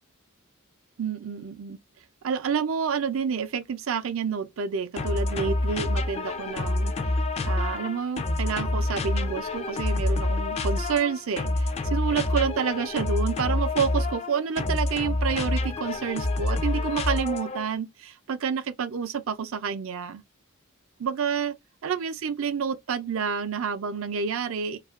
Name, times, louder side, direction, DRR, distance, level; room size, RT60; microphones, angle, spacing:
voice 1, 1.0-1.8 2.2-7.1 7.4-20.2 21.0-21.5 21.8-24.8, right 6 dB, 70° right, 0.5 m, -29 dB
sound 1, 5.0-17.7, left 2 dB, 30° left, 0.3 m, -27 dB
2.8 x 2.4 x 2.4 m
head